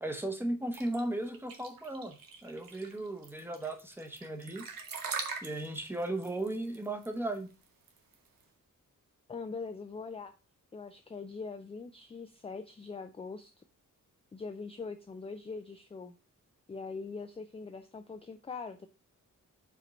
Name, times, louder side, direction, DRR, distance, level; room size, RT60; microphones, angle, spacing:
voice 1, 0.0-2.2 2.4-4.6 5.4-7.5, right 1 dB, 5° right, 6 dB, 0.8 m, -36 dB
sound 1, 0.7-8.4, right 5 dB, 85° right, 1.3 m, -42 dB
voice 2, 9.3-10.3 10.7-13.5 14.3-16.1 16.7-18.9, left 4 dB, 20° left, 7 dB, 0.3 m, -42 dB
5.1 x 4.4 x 5.1 m, 0.32 s
wide cardioid pair, 170°, 33 cm